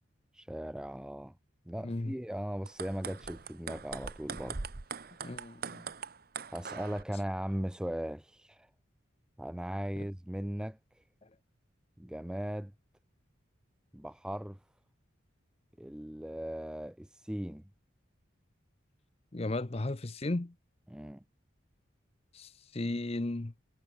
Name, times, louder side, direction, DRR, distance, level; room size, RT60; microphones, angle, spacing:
voice 1, 0.3-1.3 1.7-4.6 5.0-5.1 6.5-8.7 9.4-10.8 12.0-12.7 13.9-14.6 15.8-17.6 20.9-21.2, equal, 5° right, 0.3 m, -38 dB
voice 2, 1.8-2.1 5.2-5.9 19.3-20.5 22.3-23.5, left 2 dB, 30° left, 0.7 m, -35 dB
sound 1, 2.5-7.0, right 5 dB, 45° right, 0.9 m, -42 dB
head